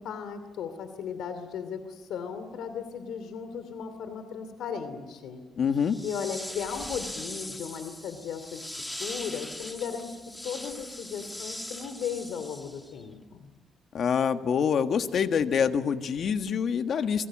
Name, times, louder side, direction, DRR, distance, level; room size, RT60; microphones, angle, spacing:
voice 1, 0.0-5.4 6.0-8.7 9.0-10.2 10.4-13.5, left 7 dB, 85° left, 10 dB, 2.6 m, -36 dB
voice 2, 5.6-6.0 13.9-17.3, left 7 dB, 55° left, 8 dB, 1.5 m, -26 dB
sound 1, 5.8-13.0, left 1 dB, 10° left, 2.3 m, -40 dB
27.5 x 23.0 x 7.5 m, 1.3 s
cardioid pair, 125°, 0 cm